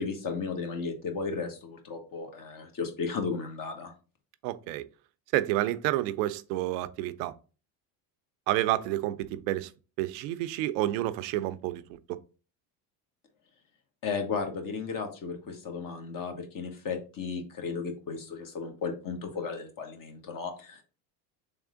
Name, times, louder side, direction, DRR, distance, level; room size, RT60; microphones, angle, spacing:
voice 1, 0.0-3.9 14.0-20.8, left 5 dB, 40° left, 1.3 m, -34 dB
voice 2, 4.4-4.9 5.3-7.4 8.5-9.7 10.0-12.2, right 15 dB, 75° right, 0.6 m, -29 dB
3.5 x 3.3 x 3.7 m
supercardioid pair, 95°, 49 cm